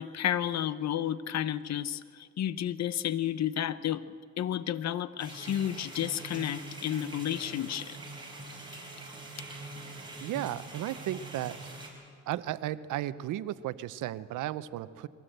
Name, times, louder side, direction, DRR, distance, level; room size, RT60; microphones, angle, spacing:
voice 1, 0.0-4.0 4.4-8.0, left 11 dB, 60° left, 16 dB, 0.8 m, -31 dB
sound 1, 5.2-11.9, right 2 dB, 15° right, 5.4 m, -44 dB
voice 2, 10.2-11.8 12.3-15.1, right 13 dB, 85° right, 16 dB, 0.7 m, -35 dB
22.0 x 17.0 x 7.9 m, 2.2 s
cardioid pair, 90°, 30 cm